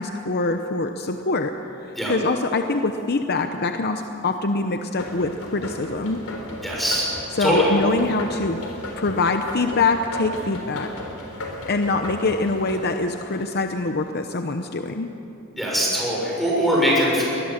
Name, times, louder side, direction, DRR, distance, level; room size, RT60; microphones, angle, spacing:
voice 1, 0.0-1.5 1.8-6.2 7.3-8.6 9.0-10.9 11.7-15.1, left 3 dB, 50° left, 6 dB, 0.8 m, -24 dB
sound 1, 5.0-14.1, left 1 dB, 85° left, 4.0 m, -36 dB
voice 2, 6.6-7.1 7.4-7.7 15.6-17.3, equal, ahead, -4 dB, 6.3 m, -21 dB
23.5 x 20.0 x 7.4 m, 2.9 s
head